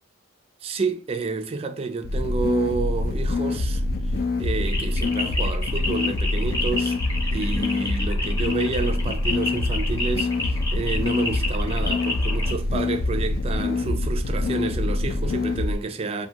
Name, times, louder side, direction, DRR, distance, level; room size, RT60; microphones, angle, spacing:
voice 1, 0.6-4.1 4.4-7.0 7.3-16.3, right 4 dB, 30° right, 0.3 m, -29 dB
sound 1, 2.0-15.7, left 2 dB, 50° left, 0.3 m, -25 dB
sound 2, 4.6-12.5, left 2 dB, 15° left, 0.8 m, -31 dB
2.6 x 2.2 x 2.8 m
head